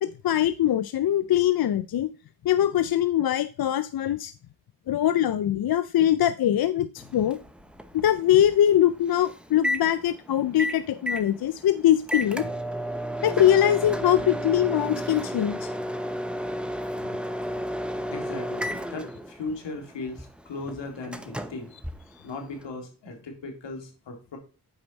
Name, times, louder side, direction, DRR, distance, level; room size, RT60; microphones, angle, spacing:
voice 1, 0.0-2.1 2.4-4.3 4.9-7.4 7.9-12.4 13.2-15.7, left 11 dB, 60° left, 13 dB, 0.5 m, -22 dB
Microwave oven, 7.0-22.7, equal, ahead, 0.9 m, -33 dB
voice 2, 18.1-21.7 22.2-24.4, left 3 dB, 80° left, 3 dB, 2.2 m, -37 dB
7.9 x 5.1 x 4.0 m, 0.35 s
cardioid pair, 50°, 42 cm